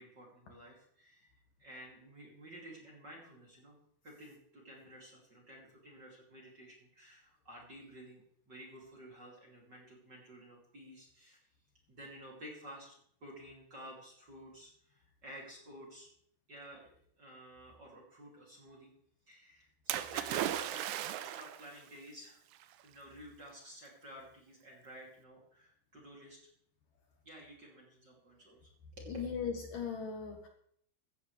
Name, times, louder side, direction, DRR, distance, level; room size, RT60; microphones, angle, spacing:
voice 1, 0.0-3.8 4.0-11.5 11.9-16.1 16.5-18.9 19.3-22.4 22.8-26.4 27.2-29.1, equal, 30° right, -2 dB, 2.7 m, -53 dB
Splash splatter, 19.9-21.7 22.6-22.7, right 12 dB, 90° right, 3.0 m, -36 dB
voice 2, 29.1-30.5, left 6 dB, 65° left, 2 dB, 2.5 m, -38 dB
15.5 x 15.0 x 3.3 m, 0.67 s
omnidirectional pair, 4.8 m